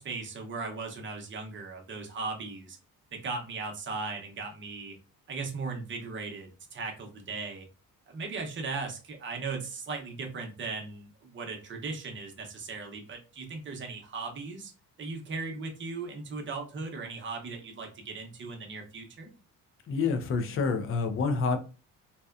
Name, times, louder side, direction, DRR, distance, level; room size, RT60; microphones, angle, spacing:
voice 1, 0.0-2.8 3.1-4.9 5.3-7.7 8.1-14.7 15.0-19.3, right 4 dB, 35° right, 0.7 m, -37 dB
voice 2, 19.9-21.6, left 4 dB, 40° left, 0.5 m, -27 dB
2.7 x 2.2 x 2.3 m
cardioid pair, 125°, 34 cm